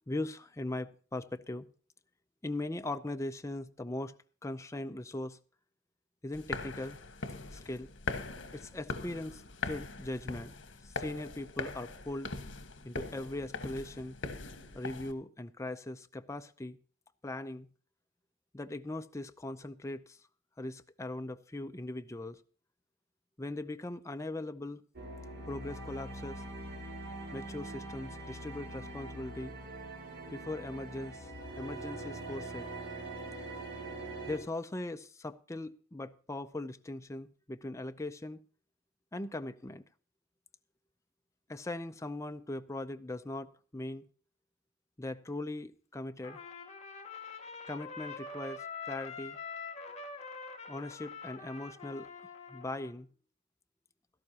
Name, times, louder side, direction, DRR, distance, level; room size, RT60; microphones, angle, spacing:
voice 1, 0.1-1.7 2.4-4.2 4.4-5.4 6.2-7.0 7.5-7.9 8.5-12.3 12.8-14.2 14.7-16.8 17.2-17.7 18.5-20.2 20.6-22.4 23.4-24.8 25.5-26.4 27.3-29.6 30.3-31.3 31.6-32.7 34.3-38.4 39.1-39.8 41.5-44.1 45.0-46.4 47.7-49.4 50.7-52.1 52.5-53.1, left 2 dB, 15° left, 0.5 m, -40 dB
sound 1, 6.3-15.1, left 3 dB, 70° left, 1.5 m, -41 dB
sound 2, 24.9-34.4, right 2 dB, 60° right, 4.6 m, -43 dB
Trumpet, 46.2-52.9, left 4 dB, 35° left, 1.9 m, -45 dB
17.0 x 13.5 x 2.9 m
head